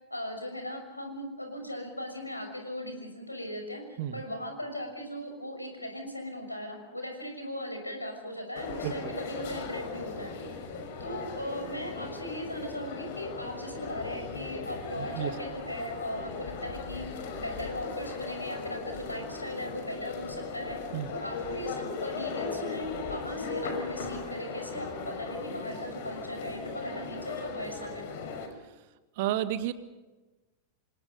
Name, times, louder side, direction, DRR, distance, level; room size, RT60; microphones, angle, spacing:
voice 1, 0.1-10.3 11.0-20.8 21.1-28.0, equal, 85° left, 5 dB, 6.2 m, -38 dB
sound 1, 8.5-28.5, left 4 dB, 50° left, 5.6 m, -38 dB
voice 2, 15.0-15.4 20.9-21.1 29.2-29.7, right 12 dB, 50° right, 11 dB, 1.9 m, -31 dB
28.5 x 25.5 x 5.5 m, 1.2 s
figure-of-eight pair, 90°, 0 cm